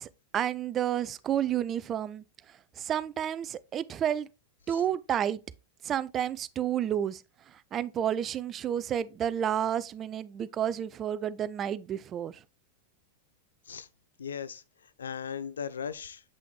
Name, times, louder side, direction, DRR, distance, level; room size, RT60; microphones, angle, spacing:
voice 1, 0.0-4.3 4.7-5.4 5.8-12.4, right 10 dB, 30° right, 0.4 m, -31 dB
voice 2, 14.2-14.6 15.0-16.2, left 7 dB, 70° left, 0.4 m, -37 dB
7.6 x 5.7 x 2.2 m
figure-of-eight pair, 90°, 0 cm